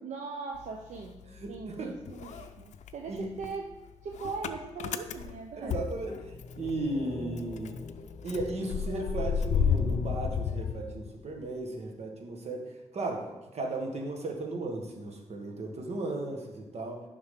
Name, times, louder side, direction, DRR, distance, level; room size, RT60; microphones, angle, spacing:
voice 1, 0.0-1.2 1.5-3.8 4.0-5.8, right 4 dB, 85° right, 1 dB, 0.7 m, -40 dB
Motor vehicle (road) / Engine starting, 0.5-1.8 2.1-6.7 7.0-7.1 7.4-11.5, left 7 dB, 80° left, 0.5 m, -32 dB
voice 2, 1.3-1.9 3.1-3.3 5.6-7.8 8.2-12.7 12.9-13.3 13.5-17.0, right 2 dB, 65° right, 2 dB, 1.5 m, -35 dB
sound 1, 5.6-10.1, left 4 dB, 55° left, 0.9 m, -45 dB
10.0 x 5.9 x 3.7 m, 1.1 s
cardioid pair, 100°, 12 cm